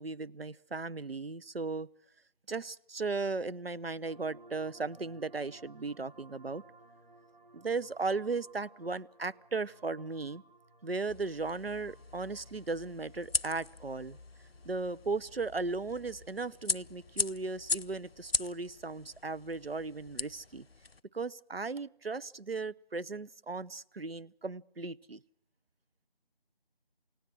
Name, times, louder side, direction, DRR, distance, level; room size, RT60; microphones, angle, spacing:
voice 1, 0.0-1.9 2.5-6.6 7.5-10.4 10.8-14.2 14.6-20.7 21.1-25.2, right 3 dB, 75° right, 19 dB, 0.9 m, -36 dB
sound 1, 4.0-18.6, right 2 dB, 50° right, 2.6 m, -61 dB
sound 2, 11.1-21.0, left 4 dB, 75° left, 0.8 m, -39 dB
29.0 x 17.5 x 6.2 m, 0.68 s
figure-of-eight pair, 175°, 30 cm